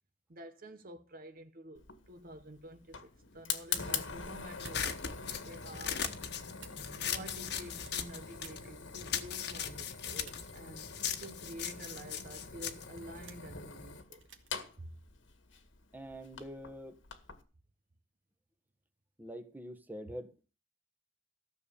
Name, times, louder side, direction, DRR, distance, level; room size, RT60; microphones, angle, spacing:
voice 1, 0.3-6.2 7.0-14.3 14.8-15.0, right 1 dB, 50° right, 1.0 m, -49 dB
Fire, 1.7-17.4, left 6 dB, 85° left, 1.9 m, -44 dB
sound 1, 4.5-5.0 5.6-6.1 6.5-7.2 7.5-8.7 9.5-9.8 10.3-10.5 11.1-11.3 11.9-12.1 12.6-13.5 14.2-14.5, right 7 dB, 75° right, 2.0 m, -54 dB
sound 2, 4.6-8.6 8.9-13.7, left 8 dB, 60° left, 1.4 m, -38 dB
voice 2, 6.7-7.1 15.9-17.0 19.2-20.4, equal, 10° right, 1.3 m, -45 dB
14.0 x 7.0 x 6.9 m
head